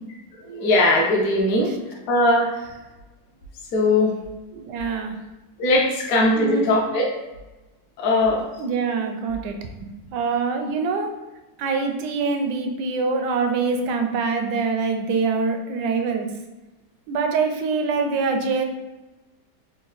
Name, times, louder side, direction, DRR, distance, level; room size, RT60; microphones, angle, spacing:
voice 1, 0.5-1.7 2.1-2.5 3.7-4.1 5.6-7.1 8.0-8.4, left 2 dB, 60° left, -2 dB, 1.0 m, -19 dB
voice 2, 4.5-5.1 6.3-6.7 8.6-9.5 9.8-11.1 11.6-16.3 17.1-18.6, right 4 dB, 85° right, 5 dB, 1.2 m, -24 dB
3.9 x 2.2 x 3.9 m, 1.1 s
omnidirectional pair, 1.8 m